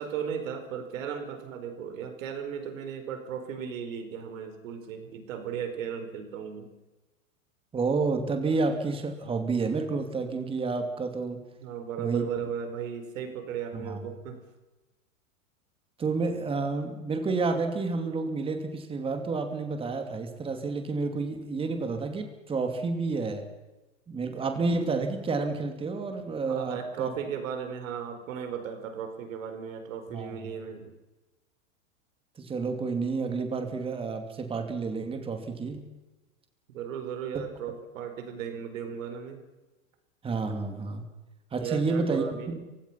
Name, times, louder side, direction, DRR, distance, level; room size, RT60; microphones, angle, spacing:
voice 1, 0.0-6.7 11.6-14.4 26.4-30.9 36.7-39.4 41.6-42.6, right 7 dB, 70° right, 7 dB, 4.7 m, -36 dB
voice 2, 7.7-11.4 12.0-12.2 13.7-14.1 16.0-23.5 24.1-27.1 30.1-30.4 32.4-35.8 40.2-41.1 41.5-42.2, right 4 dB, 15° right, 6 dB, 2.6 m, -30 dB
30.0 x 17.0 x 5.8 m, 1.1 s
supercardioid pair, 160°, 41 cm